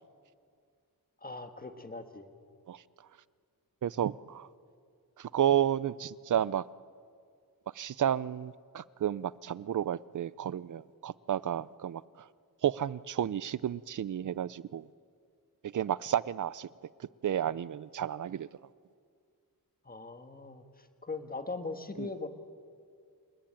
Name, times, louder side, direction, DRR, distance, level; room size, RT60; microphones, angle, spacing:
voice 1, 1.2-2.3 19.8-22.3, left 3 dB, 25° left, 7 dB, 1.6 m, -40 dB
voice 2, 3.8-4.5 5.2-6.6 7.7-12.0 12.6-14.9 15.6-16.7 17.2-18.5 22.0-22.1, right 10 dB, 55° right, 20 dB, 0.6 m, -31 dB
28.0 x 19.5 x 8.9 m, 2.2 s
wide cardioid pair, 140°, 36 cm